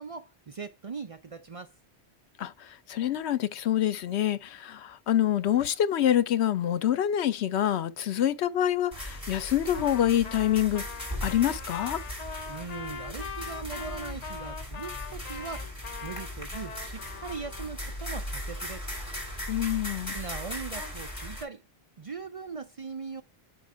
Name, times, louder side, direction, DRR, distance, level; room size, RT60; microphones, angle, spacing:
voice 1, 0.0-1.7 12.5-15.7 16.0-18.9 20.1-21.6 22.0-23.2, right 5 dB, 45° right, 0.5 m, -40 dB
voice 2, 2.9-10.9 11.2-12.0 19.5-20.2, left 11 dB, 85° left, 0.9 m, -26 dB
sound 1, 8.9-21.4, left 1 dB, 20° left, 3.5 m, -38 dB
Trumpet, 9.7-17.7, left 6 dB, 45° left, 0.7 m, -42 dB
8.3 x 5.4 x 3.4 m
omnidirectional pair, 1.1 m